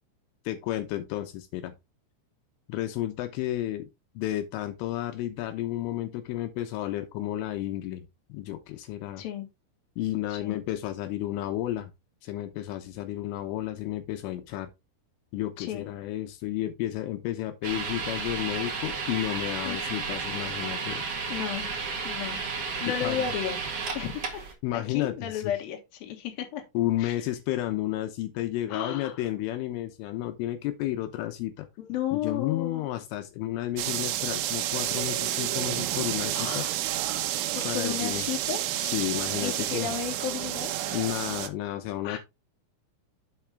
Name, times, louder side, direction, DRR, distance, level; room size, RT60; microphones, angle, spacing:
voice 1, 0.5-1.7 2.7-3.9 4.2-9.2 10.0-11.9 12.2-14.7 15.3-21.0 22.9-23.3 24.6-25.5 26.7-31.7 32.1-36.8 37.6-38.2 38.8-39.9 40.9-42.2, left 14 dB, 80° left, 3.3 m, -32 dB
voice 2, 9.2-9.5 10.3-10.6 15.6-15.9 19.6-19.9 20.9-22.4 22.8-23.6 23.9-24.5 24.7-26.6 27.0-27.1 28.7-29.2 31.8-32.9 36.3-36.8 37.5-38.6 39.4-40.7 42.0-42.2, left 9 dB, 60° left, 2.9 m, -33 dB
sound 1, 17.6-24.5, right 5 dB, 55° right, 1.7 m, -33 dB
sound 2, 33.8-41.5, right 13 dB, 80° right, 3.1 m, -30 dB
7.7 x 5.9 x 3.5 m
omnidirectional pair, 5.8 m